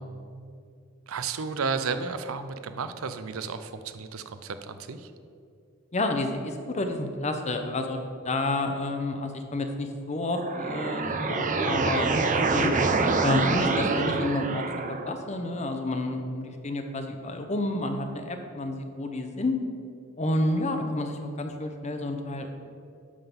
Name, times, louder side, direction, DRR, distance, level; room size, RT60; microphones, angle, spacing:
voice 1, 1.1-5.1, right 5 dB, 80° right, 10 dB, 0.6 m, -33 dB
voice 2, 5.9-12.1 12.5-12.7 13.2-14.7 15.1-19.5 20.2-22.5, left 2 dB, 35° left, 5 dB, 0.8 m, -30 dB
sound 1, 10.2-15.2, right 3 dB, 40° right, 0.6 m, -26 dB
11.0 x 3.8 x 7.0 m, 2.3 s
head